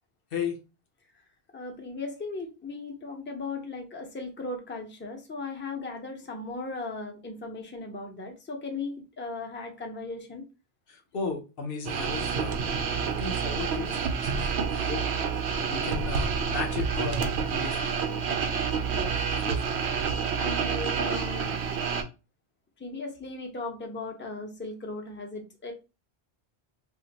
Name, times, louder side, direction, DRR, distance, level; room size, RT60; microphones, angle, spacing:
voice 1, 1.5-10.5 18.9-19.2 20.4-21.6 22.8-25.7, left 3 dB, 15° left, 0.5 m, -37 dB
voice 2, 10.9-12.6 13.0-15.0 15.6-17.2 17.5-18.0 19.3-19.8, left 5 dB, 60° left, 0.9 m, -35 dB
sound 1, 11.9-22.0, right 6 dB, 80° right, 0.8 m, -28 dB
2.5 x 2.4 x 4.0 m
omnidirectional pair, 1.1 m